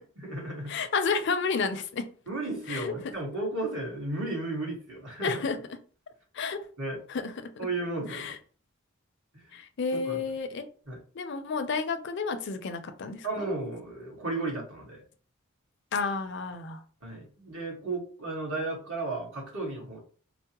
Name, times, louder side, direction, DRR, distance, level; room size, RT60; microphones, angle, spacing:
voice 1, 0.2-0.7 2.3-5.4 6.8-7.0 7.6-8.3 10.0-10.2 10.9-11.0 13.2-15.0 17.0-20.0, right 2 dB, 65° right, -2 dB, 1.5 m, -34 dB
voice 2, 0.7-2.0 2.7-2.9 5.2-5.6 6.3-6.6 7.1-7.7 8.1-8.4 9.5-10.6 11.1-13.5 15.9-16.8, left 4 dB, 55° left, 8 dB, 0.4 m, -31 dB
4.5 x 2.0 x 2.9 m, 0.41 s
head